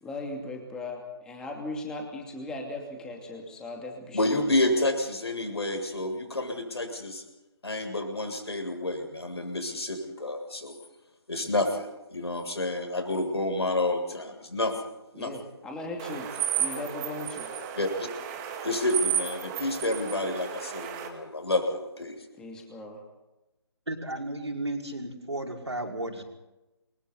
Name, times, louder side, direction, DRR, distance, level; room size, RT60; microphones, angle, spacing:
voice 1, 0.0-4.8 15.1-16.3 16.6-17.5 22.4-23.0, left 2 dB, 5° left, 2 dB, 2.6 m, -38 dB
voice 2, 4.1-7.2 7.6-10.7 11.3-14.8 15.1-15.3 16.7-16.8 17.8-18.1 18.6-22.1, left 2 dB, 65° left, 4 dB, 7.6 m, -29 dB
sound 1, 16.0-21.1, right 10 dB, 15° right, 2.1 m, -33 dB
voice 3, 23.9-26.2, right 1 dB, 75° right, 1 dB, 5.6 m, -34 dB
28.5 x 24.0 x 4.2 m, 0.99 s
figure-of-eight pair, 150°, 14 cm